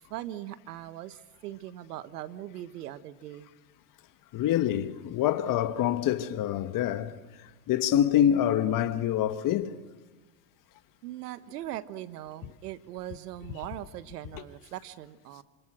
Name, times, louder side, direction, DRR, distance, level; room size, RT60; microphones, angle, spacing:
voice 1, 0.1-3.5 11.0-15.4, right 13 dB, 85° right, 1.5 m, -40 dB
voice 2, 4.3-7.1 7.4-9.8, left 11 dB, 45° left, 1.5 m, -26 dB
27.5 x 26.5 x 6.3 m
supercardioid pair, 105°, 45 cm